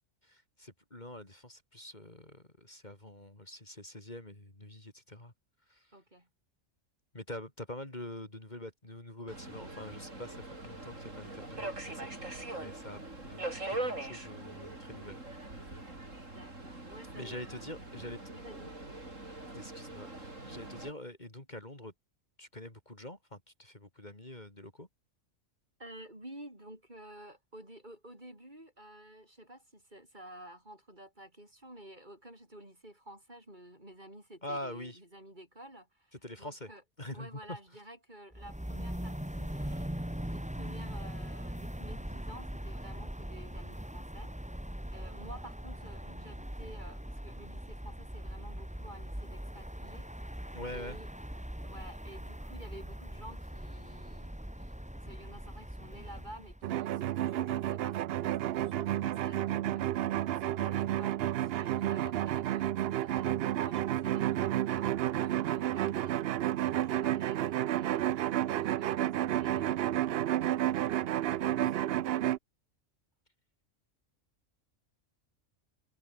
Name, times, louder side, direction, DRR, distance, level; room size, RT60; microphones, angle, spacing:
voice 1, 0.2-5.3 5.7-5.9 7.1-12.1 12.5-15.2 15.6-15.8 17.1-18.2 19.5-21.9 22.4-24.9 34.4-35.0 36.2-36.7 37.0-37.6 50.5-51.0 71.5-71.8, left 1 dB, 35° left, 4.4 m, -45 dB
voice 2, 5.9-6.3 16.3-17.7 18.3-18.8 25.8-36.8 37.1-39.9 40.3-44.3 44.9-50.5 50.7-51.1 51.6-54.3 54.9-59.9 60.2-70.0, right 1 dB, 35° right, 7.3 m, -52 dB
Subway metro underground, 9.3-20.9, right 2 dB, 80° right, 6.3 m, -42 dB
sound 1, 38.3-56.6, equal, 5° right, 2.3 m, -41 dB
sound 2, 56.6-72.4, right 12 dB, 65° right, 0.7 m, -31 dB
omnidirectional pair, 1.3 m